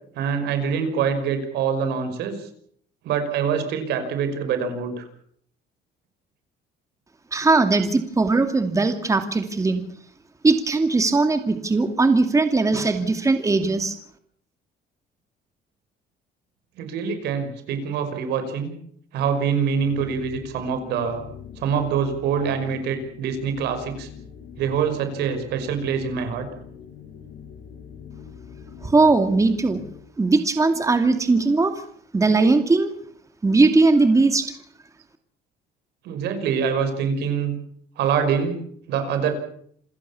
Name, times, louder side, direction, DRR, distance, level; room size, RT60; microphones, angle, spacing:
voice 1, 0.1-2.5 3.0-5.1 16.8-18.7 19.1-21.2 21.6-24.1 24.6-26.5 36.0-37.6 38.0-38.6 38.9-39.3, right 6 dB, 80° right, 8 dB, 5.5 m, -25 dB
voice 2, 7.3-9.8 10.4-14.0 28.8-29.8 30.2-31.7 32.1-32.9 33.4-34.6, right 3 dB, 20° right, 7 dB, 2.5 m, -19 dB
sound 1, 19.7-30.1, left 7 dB, 60° left, 6.7 m, -43 dB
28.0 x 16.0 x 7.2 m, 0.64 s
cardioid pair, 110°, 17 cm